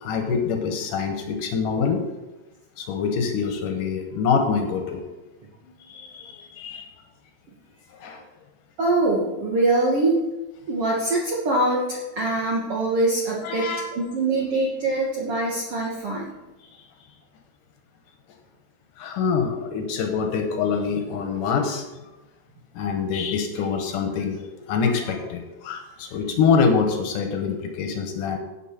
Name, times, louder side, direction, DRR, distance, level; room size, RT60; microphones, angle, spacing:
voice 1, 0.0-2.0 2.8-5.0 5.8-6.9 7.9-8.2 13.4-13.9 19.0-21.9 22.7-28.4, left 5 dB, 65° left, 4 dB, 2.4 m, -25 dB
voice 2, 8.8-10.1 10.7-13.7 13.9-16.3, right 2 dB, 75° right, -3 dB, 1.3 m, -23 dB
11.0 x 8.4 x 4.5 m, 1.1 s
omnidirectional pair, 4.7 m